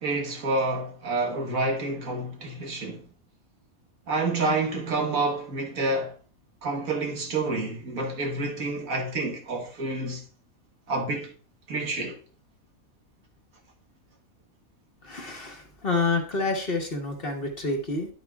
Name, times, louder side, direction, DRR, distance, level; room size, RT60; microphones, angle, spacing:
voice 1, 0.0-3.0 4.1-6.1 6.6-10.2 10.9-11.3 11.7-12.2, right 2 dB, 70° right, 1.8 m, -28 dB
voice 2, 15.0-18.1, left 3 dB, 45° left, 1.4 m, -28 dB
9.5 x 8.4 x 2.3 m
omnidirectional pair, 1.5 m